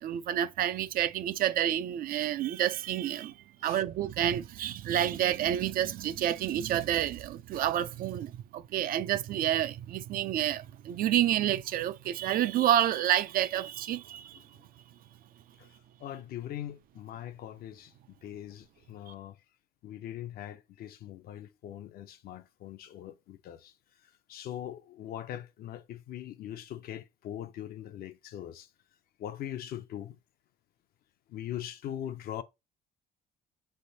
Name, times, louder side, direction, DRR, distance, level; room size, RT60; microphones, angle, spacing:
voice 1, 0.0-14.4, right 11 dB, 60° right, 0.4 m, -29 dB
voice 2, 16.0-17.9 18.2-19.4 19.8-23.7 24.3-28.7 29.2-30.2 31.3-32.4, left 11 dB, 65° left, 0.6 m, -41 dB
5.3 x 3.3 x 2.7 m
cardioid pair, 110°, 17 cm